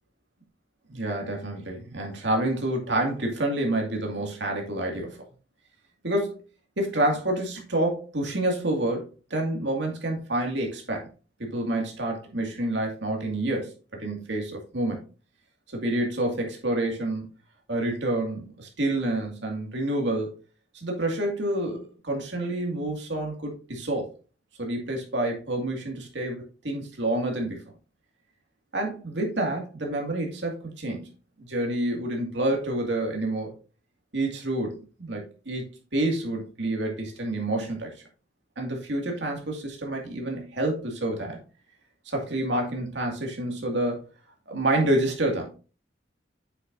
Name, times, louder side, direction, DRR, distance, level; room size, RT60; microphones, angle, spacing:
voice 1, 0.9-5.2 6.0-6.4 6.8-11.1 11.4-13.7 14.0-15.0 15.7-17.3 17.7-20.4 20.7-24.1 24.6-27.6 28.7-31.1 31.4-33.5 34.1-37.9 38.6-41.4 42.1-44.1 44.5-45.5, right 1 dB, 75° right, 1 dB, 2.2 m, -28 dB
7.7 x 6.7 x 2.7 m, 0.34 s
head